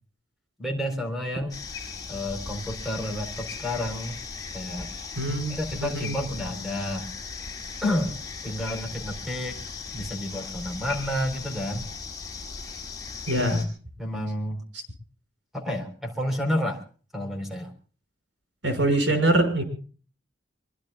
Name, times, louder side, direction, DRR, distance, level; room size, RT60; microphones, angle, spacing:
voice 1, 0.6-1.6 2.1-4.2 4.5-4.9 5.5-7.1 7.8-8.1 8.4-9.6 9.9-11.9 13.3-13.7 14.0-14.6 15.5-16.8 17.1-17.7, left 1 dB, ahead, 4 dB, 4.3 m, -30 dB
sound 1, 1.5-13.7, left 4 dB, 20° left, 6.0 m, -37 dB
voice 2, 5.2-6.3 13.3-13.6 18.6-19.6, right 1 dB, 75° right, 6 dB, 6.3 m, -24 dB
25.0 x 23.5 x 2.4 m, 0.41 s
head